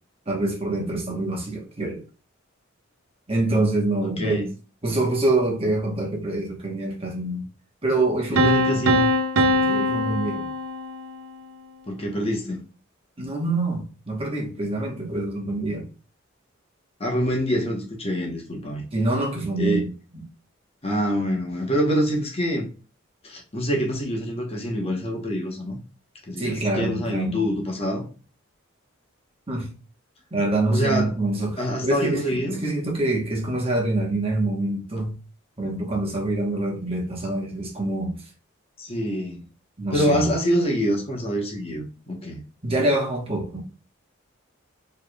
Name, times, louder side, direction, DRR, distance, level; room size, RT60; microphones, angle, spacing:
voice 1, 0.3-2.0 3.3-4.4 4.8-7.5 7.8-8.8 9.5-10.5 13.2-15.9 18.9-19.9 20.1-20.2 26.4-27.4 29.5-29.7 30.3-35.1 35.6-38.2 39.8-40.4 42.6-43.6, right 2 dB, 30° right, 1.1 m, -25 dB
voice 2, 4.0-4.5 8.3-9.1 11.9-12.7 17.0-18.9 19.6-19.9 20.8-22.7 23.2-25.8 26.3-28.1 30.7-31.1 31.6-32.6 38.8-39.4 39.9-42.4, equal, 30° left, 1.0 m, -25 dB
Piano, 8.4-11.2, left 1 dB, 85° right, 0.6 m, -22 dB
4.5 x 3.2 x 2.3 m
head